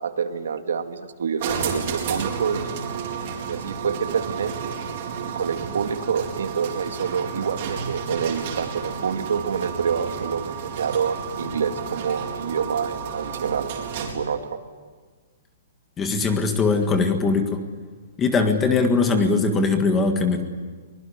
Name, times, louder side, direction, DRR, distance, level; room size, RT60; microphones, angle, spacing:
voice 1, 0.0-2.8 3.5-4.5 5.2-13.7 14.0-14.6, right 6 dB, 80° right, 6 dB, 2.4 m, -27 dB
sound 1, 1.4-14.3, right 6 dB, 35° right, 4.2 m, -32 dB
voice 2, 16.0-17.6 18.2-20.4, left 4 dB, 10° left, 6 dB, 1.7 m, -21 dB
24.0 x 21.5 x 10.0 m, 1.5 s
hypercardioid pair, 180°, 0 cm